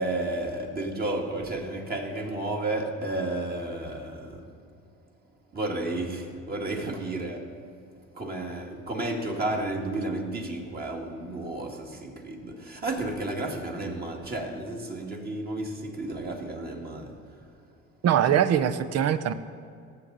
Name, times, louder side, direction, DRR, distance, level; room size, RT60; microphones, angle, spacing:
voice 1, 0.0-4.5 5.5-7.5 8.1-17.4, right 2 dB, 30° right, 2.0 m, -32 dB
voice 2, 18.0-19.3, right 9 dB, 55° right, 0.8 m, -22 dB
18.5 x 7.7 x 4.0 m
cardioid pair, 100°, 30 cm